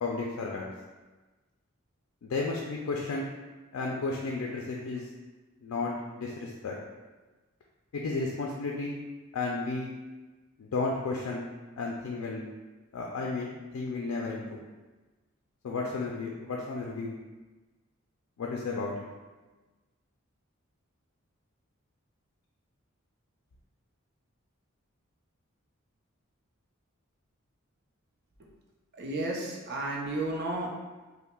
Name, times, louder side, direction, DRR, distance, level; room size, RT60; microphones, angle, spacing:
voice 1, 0.0-0.7 2.2-3.3 3.7-5.1 5.6-6.8 7.9-9.0 9.3-9.9 10.6-11.4 11.8-12.5 12.9-14.6 15.6-17.1 18.4-19.0, left 3 dB, 85° left, -2 dB, 0.4 m, -33 dB
voice 2, 29.0-30.7, right 2 dB, 50° right, -2 dB, 0.6 m, -32 dB
5.4 x 2.1 x 2.2 m, 1.2 s
head